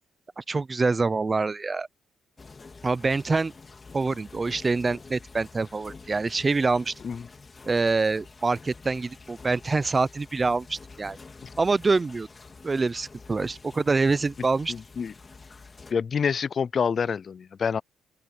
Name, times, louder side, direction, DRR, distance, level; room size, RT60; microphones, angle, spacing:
voice 1, 0.4-1.9 2.8-3.5 3.9-6.9 7.7-11.2 11.6-12.3 12.6-14.7, right 3 dB, 25° right, 0.4 m, -25 dB
sound 1, 2.4-15.9, left 4 dB, 30° left, 2.1 m, -48 dB
voice 2, 14.7-15.1 15.9-17.8, left 6 dB, 45° left, 0.4 m, -27 dB
open air
cardioid pair, 90°, 0 cm